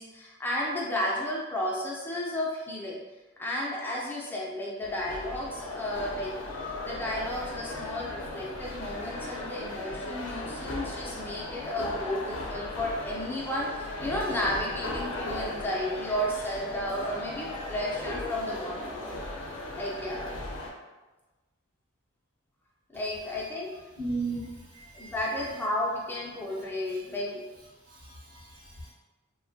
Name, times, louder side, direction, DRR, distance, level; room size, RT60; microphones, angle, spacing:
voice 1, 0.0-3.0 3.4-6.3 6.8-19.2 19.7-20.3 22.9-23.8 24.9-27.5, left 1 dB, 10° left, -4 dB, 0.4 m, -33 dB
sound 1, 4.8-20.7, left 2 dB, 60° left, 0.5 m, -37 dB
voice 2, 24.0-25.1 27.9-28.9, right 3 dB, 75° right, -6 dB, 1.0 m, -36 dB
3.0 x 2.1 x 2.6 m, 1.2 s
head